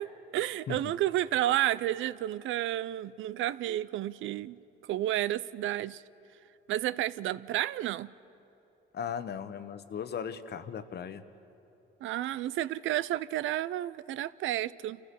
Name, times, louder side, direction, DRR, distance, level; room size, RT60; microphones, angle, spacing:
voice 1, 0.0-4.6 4.9-6.0 6.7-8.1 12.0-15.0, right 13 dB, 80° right, 0.5 m, -31 dB
voice 2, 8.9-11.2, left 7 dB, 55° left, 1.0 m, -37 dB
28.0 x 15.0 x 6.8 m
cardioid pair, 90°, 20 cm